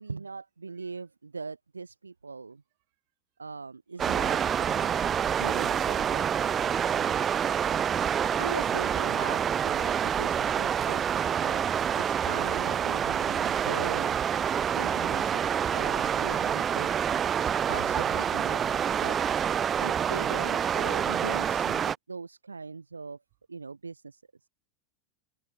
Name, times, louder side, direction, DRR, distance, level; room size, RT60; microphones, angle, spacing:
voice 1, 0.0-2.6 3.4-6.6 8.4-11.0 11.4-11.6 12.0-14.2 14.7-17.0 17.7-19.2 19.8-23.2 23.5-24.2, right 4 dB, 90° right, 0.4 m, -40 dB
voice 2, 0.8-1.0 3.9-4.1, right 26 dB, 60° right, 6.9 m, -64 dB
sound 1, 4.0-22.0, right 8 dB, 30° right, 0.8 m, -27 dB
open air
figure-of-eight pair, 85°, 0 cm